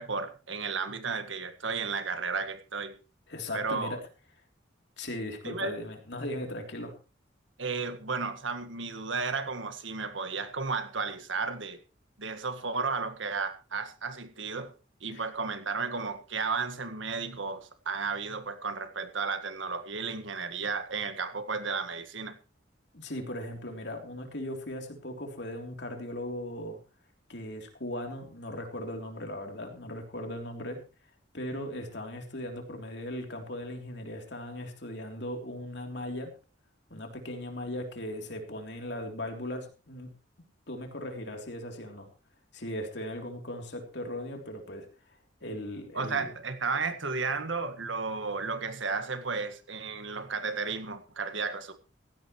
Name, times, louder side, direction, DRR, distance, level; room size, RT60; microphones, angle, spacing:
voice 1, 0.0-2.9 3.5-4.0 5.4-5.7 7.6-11.8 12.2-14.7 15.0-22.4 45.9-51.7, right 4 dB, 90° right, 10 dB, 1.8 m, -33 dB
voice 2, 3.3-4.0 5.0-6.9 15.1-15.3 22.9-26.8 27.3-30.8 31.3-36.3 36.9-40.1 40.7-42.1 42.5-44.8 45.4-46.3, left 1 dB, 65° left, 3 dB, 3.3 m, -38 dB
16.5 x 15.5 x 3.2 m, 0.33 s
head